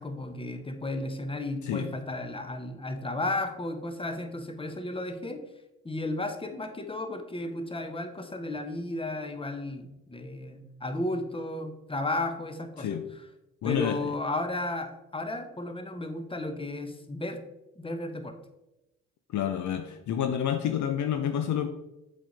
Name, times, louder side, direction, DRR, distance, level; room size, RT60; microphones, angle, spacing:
voice 1, 0.0-5.5 5.8-12.9 13.6-17.4 17.8-18.4, left 2 dB, 15° left, 7 dB, 1.1 m, -34 dB
voice 2, 13.6-14.0 19.3-21.7, left 9 dB, 50° left, 7 dB, 0.7 m, -29 dB
7.5 x 5.2 x 4.1 m, 0.94 s
hypercardioid pair, 45°, 36 cm